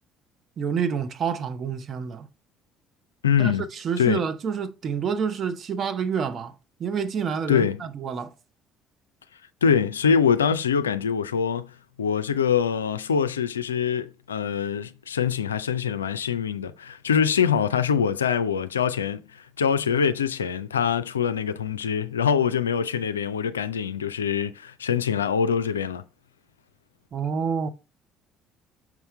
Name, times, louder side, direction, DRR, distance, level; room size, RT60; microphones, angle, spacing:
voice 1, 0.6-2.3 3.4-6.5 6.8-8.3 27.1-27.7, right 6 dB, 45° right, 0.8 m, -28 dB
voice 2, 3.2-3.6 4.0-4.2 7.5-7.8 9.6-11.7 12.0-26.0, left 7 dB, 85° left, 0.4 m, -24 dB
6.1 x 5.6 x 3.2 m
figure-of-eight pair, 55°, 0 cm